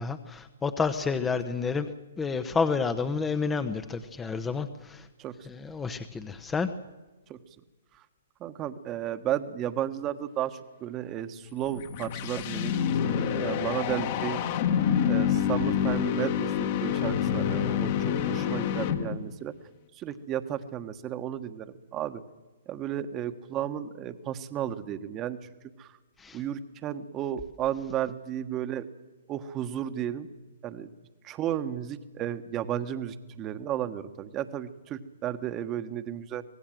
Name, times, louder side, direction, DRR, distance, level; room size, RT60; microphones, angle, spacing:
voice 1, 0.0-5.1 5.5-6.7 26.2-26.4, left 5 dB, 10° left, 10 dB, 1.0 m, -30 dB
voice 2, 8.4-14.4 15.1-19.5 19.9-22.2 22.7-25.4 25.8-26.0 26.3-28.8 29.3-30.3 30.6-30.9 31.2-36.4, right 10 dB, 25° right, 10 dB, 1.4 m, -33 dB
sound 1, 11.5-19.4, left 8 dB, 45° left, 1.9 m, -27 dB
25.0 x 18.5 x 7.8 m, 1.2 s
hypercardioid pair, 130°, 0 cm